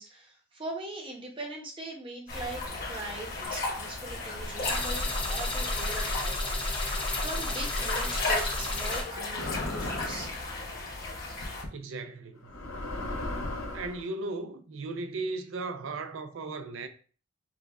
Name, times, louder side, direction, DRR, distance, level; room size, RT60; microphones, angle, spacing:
voice 1, 0.0-10.4, right 2 dB, 25° right, 0.7 m, -41 dB
sound 1, 2.3-11.6, left 2 dB, 45° left, 1.2 m, -35 dB
sound 2, 4.6-9.0, left 2 dB, 25° left, 0.7 m, -32 dB
sound 3, 9.4-10.4 11.4-11.7 12.4-14.0, left 1 dB, 75° left, 0.7 m, -36 dB
voice 2, 11.7-12.5 13.7-16.9, right 3 dB, 75° right, 0.4 m, -36 dB
4.8 x 2.2 x 2.3 m
head